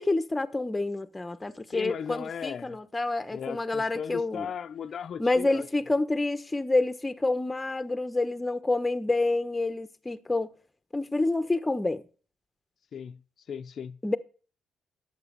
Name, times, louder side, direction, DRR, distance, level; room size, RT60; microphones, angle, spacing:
voice 1, 0.0-4.5 5.2-10.5 10.9-12.0 14.0-14.2, left 2 dB, 15° left, 1.1 m, -28 dB
voice 2, 1.7-2.8 3.3-5.7 12.9-14.0, left 7 dB, 55° left, 0.7 m, -37 dB
11.0 x 8.3 x 6.8 m
cardioid pair, 90°, 0 cm